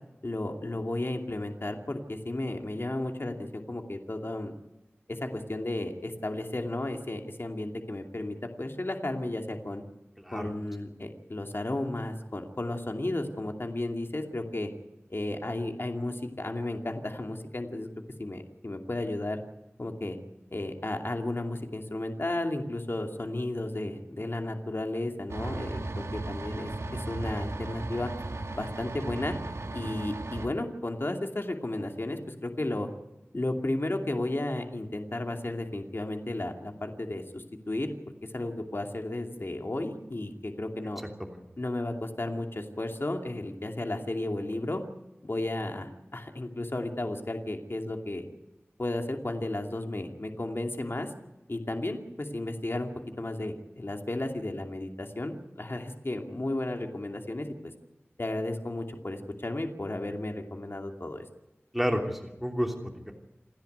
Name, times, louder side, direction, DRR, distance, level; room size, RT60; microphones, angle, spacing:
voice 1, 0.2-4.5 5.1-9.8 10.3-14.7 15.1-17.9 18.2-19.4 19.8-20.2 20.5-28.1 28.5-29.3 29.7-32.9 33.3-37.9 38.3-41.0 41.6-44.8 45.2-48.2 48.8-51.1 51.5-52.9 53.2-57.7 58.2-61.2, left 1 dB, 55° left, 4 dB, 2.6 m, -33 dB
sound 1, 25.3-30.5, right 2 dB, 85° right, 1.8 m, -36 dB
voice 2, 61.7-63.1, equal, 5° right, 2 dB, 3.0 m, -31 dB
28.5 x 10.5 x 9.4 m, 0.98 s
wide cardioid pair, 45°, 5 cm